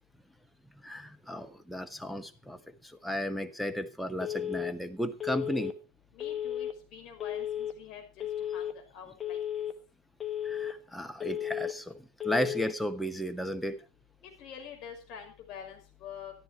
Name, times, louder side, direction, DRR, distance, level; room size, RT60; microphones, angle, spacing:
voice 1, 0.8-2.6 3.0-5.7 10.4-11.9 12.2-13.8, equal, ahead, 1.0 m, -34 dB
Telephone, 4.2-4.7 5.2-5.7 6.2-6.7 7.2-7.7 8.2-8.7 9.2-9.7 10.2-10.7 11.2-11.7 12.2-12.7, left 10 dB, 15° left, 1.4 m, -34 dB
voice 2, 6.1-9.6 14.4-16.3, left 8 dB, 35° left, 5.6 m, -46 dB
13.5 x 12.5 x 4.6 m
figure-of-eight pair, 90°, 0 cm